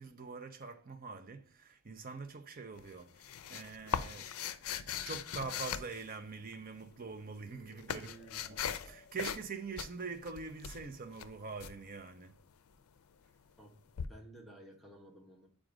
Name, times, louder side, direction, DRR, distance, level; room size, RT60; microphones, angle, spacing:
voice 1, 0.0-4.3 4.7-8.1 8.4-12.3, right 4 dB, 40° right, 0.7 m, -44 dB
sound 1, 2.8-6.6 7.3-8.9 9.2-9.5 9.8-11.7 14.0-14.1, left 8 dB, 80° left, 0.4 m, -39 dB
sound 2, 6.6-10.2, left 2 dB, 35° left, 0.9 m, -62 dB
voice 2, 7.9-8.4 13.6-13.8 14.1-15.5, right 1 dB, ahead, 1.1 m, -54 dB
7.5 x 2.5 x 5.0 m
head